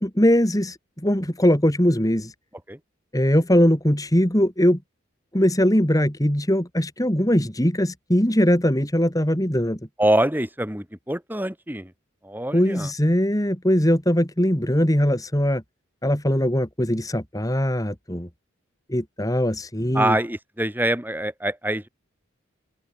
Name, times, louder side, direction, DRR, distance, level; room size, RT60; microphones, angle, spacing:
voice 1, 0.0-2.3 3.1-4.8 5.3-9.8 12.5-15.6 16.0-18.3 18.9-20.2, equal, 15° left, 3.0 m, -21 dB
voice 2, 10.0-11.9 12.2-12.9 19.9-21.9, right 1 dB, 10° right, 4.0 m, -24 dB
open air
head